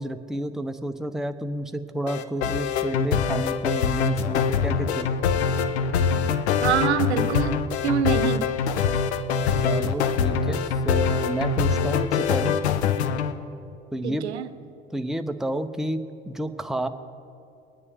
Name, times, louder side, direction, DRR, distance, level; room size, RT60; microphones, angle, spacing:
voice 1, 0.0-5.1 9.6-12.6 13.9-14.3 14.9-16.9, right 1 dB, ahead, 7 dB, 0.7 m, -30 dB
sound 1, 2.1-13.3, left 6 dB, 75° left, 0.7 m, -24 dB
voice 2, 6.6-7.6 7.8-8.5 14.0-14.5, right 9 dB, 80° right, 11 dB, 0.7 m, -25 dB
23.0 x 9.7 x 3.5 m, 2.7 s
hypercardioid pair, 65°, 33 cm